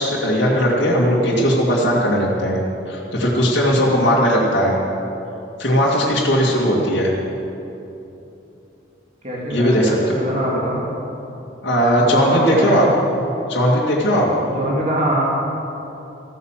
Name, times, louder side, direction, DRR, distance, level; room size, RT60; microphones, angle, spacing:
voice 1, 0.0-2.6 2.9-4.8 5.6-7.1 9.5-10.2 11.6-12.9 13.5-14.3, equal, 65° left, -5 dB, 2.3 m, -18 dB
voice 2, 3.6-4.0 6.1-6.5 9.2-10.9 12.0-12.9 14.4-15.2, right 1 dB, 40° right, -5 dB, 3.0 m, -24 dB
15.0 x 9.6 x 7.5 m, 2.9 s
head